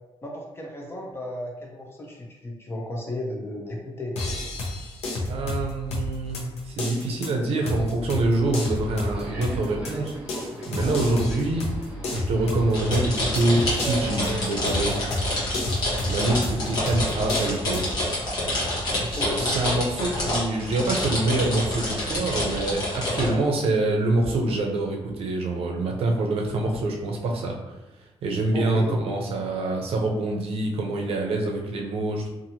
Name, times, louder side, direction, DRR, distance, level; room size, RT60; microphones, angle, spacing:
voice 1, 0.2-4.1 7.0-7.1 19.2-19.6 23.2-23.4 28.5-29.2, left 1 dB, 25° left, -1 dB, 0.5 m, -34 dB
sound 1, 4.2-17.9, left 2 dB, 80° left, 0.6 m, -31 dB
voice 2, 5.3-11.7 12.1-14.9 16.0-17.8 19.0-27.7 28.2-32.3, right 2 dB, 70° right, 1 dB, 0.5 m, -26 dB
Subway metro underground, 8.5-15.1, right 3 dB, 15° right, 0.7 m, -39 dB
sound 2, 12.7-23.3, left 1 dB, 45° left, 1.0 m, -27 dB
2.8 x 2.5 x 2.7 m, 1.0 s
wide cardioid pair, 175°, 10 cm